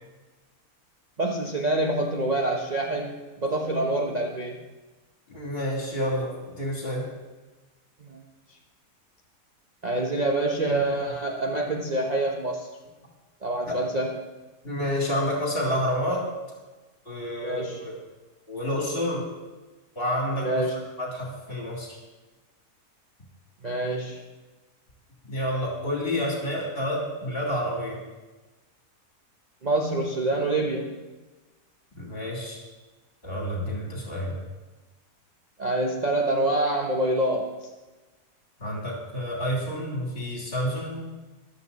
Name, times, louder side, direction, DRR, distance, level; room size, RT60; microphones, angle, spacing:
voice 1, 1.2-4.6 8.1-8.2 9.8-12.7 13.4-14.1 17.4-17.8 20.4-20.7 23.6-24.2 29.6-30.9 35.6-37.5, right 2 dB, 30° right, 0 dB, 1.0 m, -26 dB
voice 2, 5.3-7.1 13.7-13.8 14.6-16.3 17.1-18.0 18.5-19.2 20.0-20.5 21.0-22.0 25.3-28.0 32.0-32.6 33.2-34.4 38.6-41.1, equal, 35° left, -2 dB, 3.5 m, -29 dB
14.0 x 12.0 x 4.1 m, 1.2 s
omnidirectional pair, 1.7 m